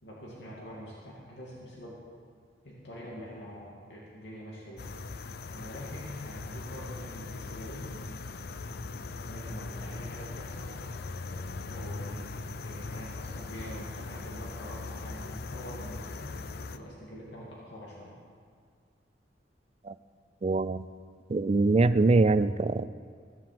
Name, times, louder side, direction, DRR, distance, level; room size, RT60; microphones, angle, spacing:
voice 1, 0.0-2.0 2.6-4.9 5.4-8.1 9.3-10.8 11.7-16.4 16.7-18.1, equal, 75° left, -5 dB, 2.5 m, -45 dB
sound 1, 4.8-16.8, left 3 dB, 60° left, 0.5 m, -40 dB
voice 2, 20.4-20.9 21.3-22.9, right 3 dB, 35° right, 14 dB, 0.4 m, -23 dB
15.5 x 7.4 x 7.8 m, 2.1 s
head